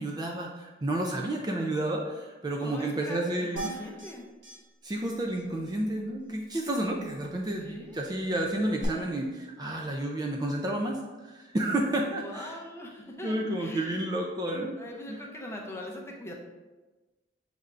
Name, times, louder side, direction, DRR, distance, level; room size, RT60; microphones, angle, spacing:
voice 1, 0.0-3.6 4.8-12.6 13.2-14.8 15.1-15.2, right 1 dB, 25° right, 0 dB, 0.4 m, -31 dB
voice 2, 2.5-4.2 7.6-8.0 12.2-14.0 14.8-16.3, left 1 dB, 15° left, -1 dB, 0.6 m, -41 dB
sound 1, 3.6-4.1 4.4-4.6 4.9-5.0 5.3-5.4 8.8-8.9, right 3 dB, 85° right, 1.1 m, -37 dB
6.4 x 3.3 x 2.5 m, 1.2 s
head